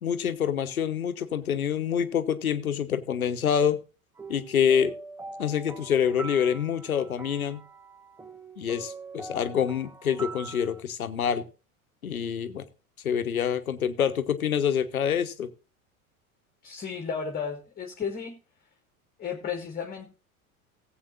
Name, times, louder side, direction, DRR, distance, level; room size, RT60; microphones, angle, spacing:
voice 1, 0.0-3.8 4.3-4.9 5.4-7.6 8.6-11.4 12.0-12.6 13.0-15.5, left 8 dB, 75° left, 10 dB, 1.1 m, -26 dB
sound 1, 4.2-10.8, right 4 dB, 5° right, 0.6 m, -43 dB
voice 2, 16.6-18.3 19.2-20.1, left 6 dB, 20° left, 3 dB, 1.8 m, -33 dB
18.0 x 8.0 x 2.5 m, 0.33 s
figure-of-eight pair, 80°, 43 cm